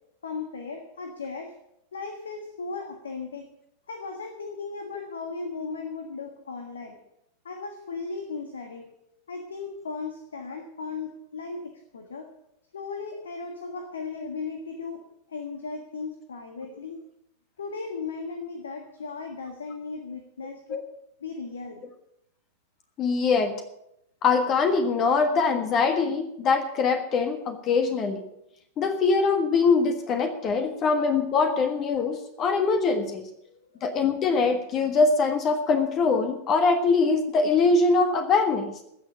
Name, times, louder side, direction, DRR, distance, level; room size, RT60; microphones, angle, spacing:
voice 1, 0.2-1.5 1.9-3.5 3.9-7.0 7.4-8.9 9.3-12.3 12.7-15.0 15.3-17.0 17.6-20.8 21.2-21.9 33.4-33.8, left 4 dB, 70° left, 6 dB, 1.5 m, -36 dB
voice 2, 23.0-23.5 24.2-28.2 28.8-33.3 33.8-38.7, left 4 dB, 30° left, 6 dB, 1.5 m, -23 dB
15.0 x 6.8 x 8.7 m, 0.79 s
figure-of-eight pair, 90°, 0 cm